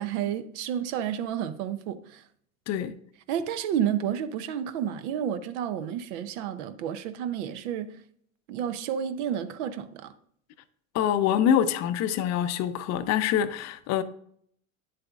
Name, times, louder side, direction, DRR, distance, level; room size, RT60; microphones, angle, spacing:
voice 1, 0.0-2.2 3.3-8.0 8.5-10.1, right 9 dB, 60° right, 0.7 m, -31 dB
voice 2, 10.9-14.0, left 9 dB, 40° left, 0.6 m, -25 dB
9.6 x 7.6 x 2.4 m
hypercardioid pair, 85°, 40 cm